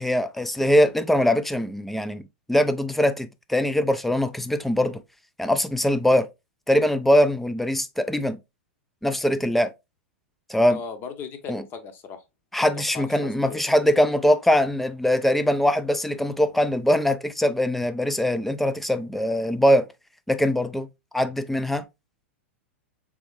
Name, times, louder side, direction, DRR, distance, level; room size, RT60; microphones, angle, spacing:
voice 1, 0.0-5.0 5.4-6.3 6.7-8.4 9.0-9.7 10.5-10.8 11.5-11.6 12.5-19.9 20.3-20.9 21.1-21.8, equal, ahead, 0.4 m, -22 dB
voice 2, 10.7-12.2 12.9-13.8, left 6 dB, 30° left, 0.8 m, -37 dB
3.5 x 3.4 x 3.0 m
figure-of-eight pair, 100°, 7 cm